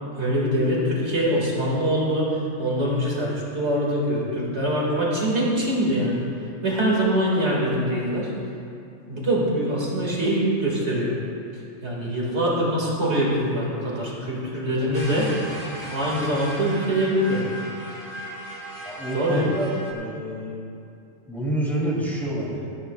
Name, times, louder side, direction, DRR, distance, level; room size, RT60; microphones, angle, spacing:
voice 1, 0.2-6.2 6.6-8.3 9.1-11.2 11.8-15.3 15.9-17.4 19.1-19.5, right 1 dB, 55° right, -5 dB, 2.4 m, -23 dB
sound 1, 14.9-19.9, right 1 dB, 30° right, 2.1 m, -37 dB
voice 2, 18.8-20.6 21.3-22.8, right 1 dB, ahead, -7 dB, 2.9 m, -28 dB
18.0 x 13.5 x 2.4 m, 2.6 s
omnidirectional pair, 1.4 m